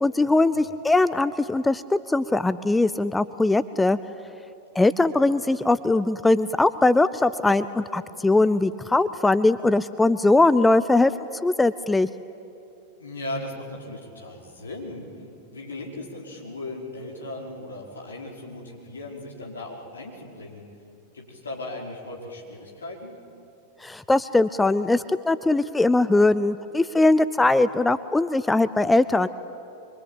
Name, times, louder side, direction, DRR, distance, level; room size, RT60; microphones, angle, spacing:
voice 1, 0.0-4.0 4.8-11.1 11.4-12.1 23.8-29.3, left 2 dB, 10° left, 14 dB, 0.6 m, -21 dB
voice 2, 13.0-15.3 15.5-20.6 21.1-23.1, left 2 dB, 70° left, -1 dB, 5.1 m, -37 dB
25.5 x 24.0 x 9.0 m, 2.8 s
figure-of-eight pair, 90°, 0 cm